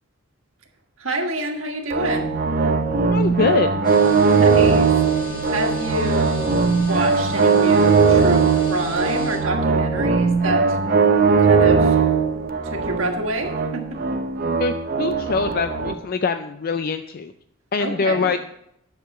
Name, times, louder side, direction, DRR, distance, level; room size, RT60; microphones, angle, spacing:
voice 1, 1.0-2.4 4.3-10.8 11.4-12.1 12.6-14.2 17.8-18.3, right 1 dB, 75° right, 3 dB, 1.6 m, -28 dB
sound 1, 1.9-15.9, right 5 dB, 45° right, 0.7 m, -19 dB
voice 2, 3.0-3.7 14.6-17.3 17.7-18.4, left 4 dB, 45° left, 9 dB, 0.4 m, -23 dB
sound 2, 3.8-9.4, right 1 dB, 20° left, 3.2 m, -33 dB
10.5 x 6.7 x 5.9 m, 0.78 s
head